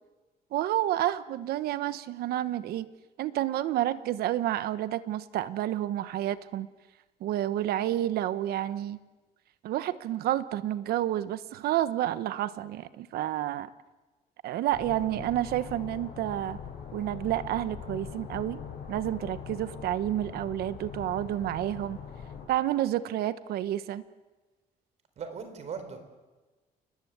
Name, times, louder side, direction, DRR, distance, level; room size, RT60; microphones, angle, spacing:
voice 1, 0.5-2.9 3.2-6.7 7.2-9.0 9.6-13.7 14.4-16.6 16.9-22.0 22.5-24.0, right 13 dB, 85° right, 14 dB, 1.1 m, -30 dB
sound 1, 14.7-22.5, left 7 dB, 75° left, 7.6 m, -42 dB
voice 2, 25.2-26.0, right 6 dB, 45° right, 9 dB, 4.1 m, -38 dB
29.0 x 20.5 x 8.3 m, 1.2 s
cardioid pair, 170°, 16 cm